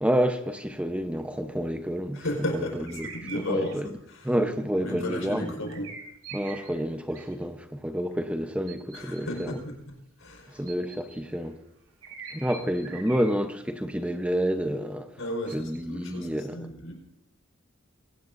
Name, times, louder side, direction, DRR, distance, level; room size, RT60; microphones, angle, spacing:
voice 1, 0.0-2.2 2.9-3.1 3.3-3.9 4.2-5.5 6.3-9.5 10.5-11.6 12.3-15.1 15.5-16.6, equal, 5° right, 0.8 m, -29 dB
voice 2, 2.1-4.3 4.8-5.9 8.9-10.7 15.2-16.9, left 1 dB, 80° left, 4.9 m, -34 dB
sound 1, 2.9-3.8 4.3-4.5 5.6-6.8 7.1-7.4 8.7-9.4 10.6-11.4 12.0-13.7 14.0-14.1 15.5-15.8, right 5 dB, 80° right, 3.7 m, -43 dB
23.0 x 18.0 x 2.6 m
head